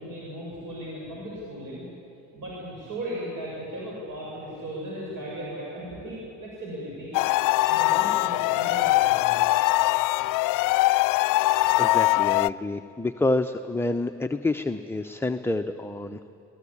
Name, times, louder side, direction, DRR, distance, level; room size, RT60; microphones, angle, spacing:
voice 1, 0.0-1.9 2.3-7.1 7.6-9.4, right 1 dB, 55° right, -4 dB, 7.1 m, -36 dB
sound 1, 7.1-12.5, left 19 dB, 55° left, 0.5 m, -22 dB
voice 2, 11.8-16.2, left 2 dB, 5° left, 8 dB, 0.7 m, -28 dB
22.5 x 19.5 x 8.6 m, 2.8 s
hypercardioid pair, 65°, 39 cm